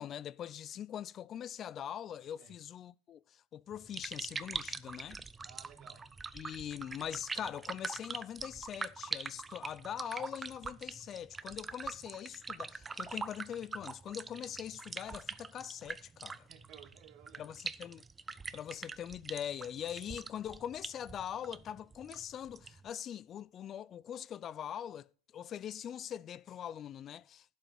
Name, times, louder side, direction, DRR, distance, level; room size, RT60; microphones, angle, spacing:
voice 1, 0.0-5.2 6.3-16.5 17.4-18.0 18.5-25.1 25.3-27.5, left 10 dB, 35° left, 0.5 m, -42 dB
sound 1, 3.7-22.9, right 4 dB, 15° right, 0.5 m, -44 dB
voice 2, 5.4-6.1 16.5-17.6, right 8 dB, 50° right, 2.5 m, -56 dB
11.5 x 8.3 x 4.3 m
hypercardioid pair, 105°, 0 cm